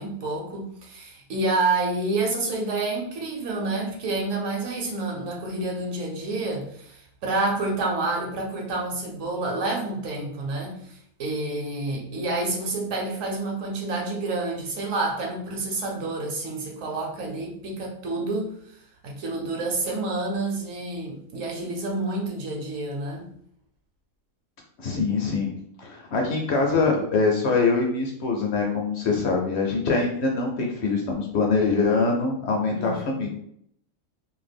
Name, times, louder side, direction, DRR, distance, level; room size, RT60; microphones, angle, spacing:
voice 1, 0.0-18.5 19.0-23.3 32.6-33.3, right 2 dB, 70° right, -1 dB, 1.0 m, -29 dB
voice 2, 24.8-25.5 25.8-33.3, left 4 dB, 65° left, 0 dB, 0.7 m, -24 dB
2.6 x 2.1 x 3.4 m, 0.68 s
omnidirectional pair, 1.5 m